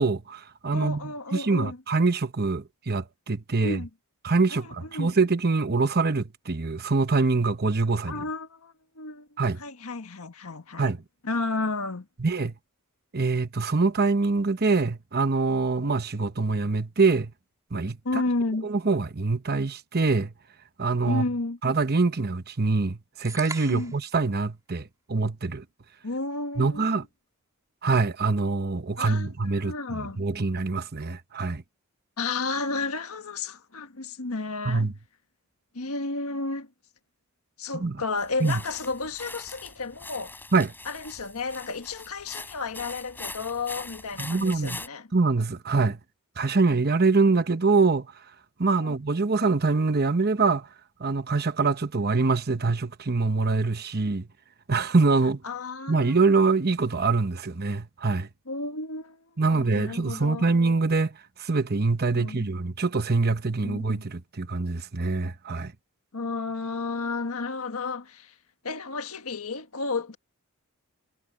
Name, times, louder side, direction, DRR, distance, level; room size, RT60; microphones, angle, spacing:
voice 1, 0.0-1.0 1.3-3.8 4.2-8.2 9.4-9.6 10.8-11.0 12.2-12.5 13.1-17.3 17.7-18.0 18.6-20.3 20.8-21.3 21.6-25.6 26.6-27.0 27.8-31.6 34.6-34.9 37.8-38.0 38.4-38.6 40.5-40.7 44.2-44.8 45.1-46.0 46.4-48.1 48.6-50.7 51.0-54.3 54.7-55.4 55.9-58.3 59.4-65.7, right 3 dB, 45° right, 1.0 m, -24 dB
voice 2, 0.7-1.8 3.6-3.9 4.5-5.1 8.1-10.9 11.2-12.1 18.0-18.7 21.0-21.6 23.7-23.9 26.0-27.0 29.0-30.2 32.2-34.9 35.7-36.7 37.6-40.3 40.8-45.1 48.8-49.0 55.4-56.2 58.4-60.5 62.1-62.5 63.6-64.0 66.1-68.3 68.6-70.2, left 3 dB, 75° left, 1.6 m, -32 dB
sound 1, 23.3-24.1, right 3 dB, 15° right, 3.2 m, -38 dB
sound 2, 38.2-44.9, left 2 dB, 10° left, 4.6 m, -42 dB
head